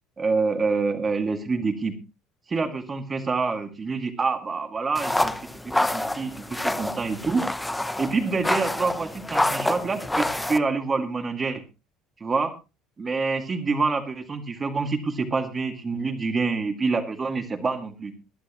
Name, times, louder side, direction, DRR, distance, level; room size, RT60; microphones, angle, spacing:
voice 1, 0.2-2.0 2.5-5.3 5.6-7.4 8.0-11.6 12.2-12.5 13.0-18.1, right 4 dB, 20° right, 7 dB, 2.0 m, -26 dB
sound 1, 5.0-10.6, left 1 dB, 5° left, 0.7 m, -27 dB
21.0 x 11.0 x 3.0 m, 0.28 s
cardioid pair, 150°, 0 cm